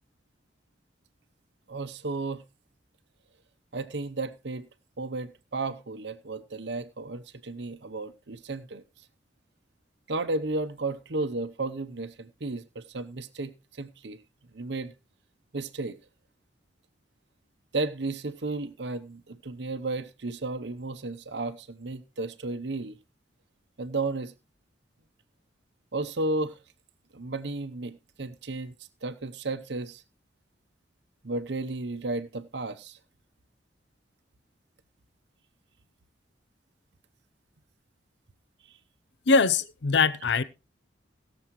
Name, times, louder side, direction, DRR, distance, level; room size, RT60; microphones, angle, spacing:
voice 1, 1.7-2.4 3.7-4.7 5.0-8.8 10.1-14.2 14.5-14.9 15.5-16.0 17.7-23.0 23.8-24.3 25.9-26.6 27.1-28.7 29.0-30.0 31.2-33.0 38.7-38.8, right 2 dB, 65° right, 0.8 m, -33 dB
voice 2, 39.3-40.4, left 4 dB, 70° left, 0.6 m, -22 dB
20.0 x 6.9 x 3.1 m
head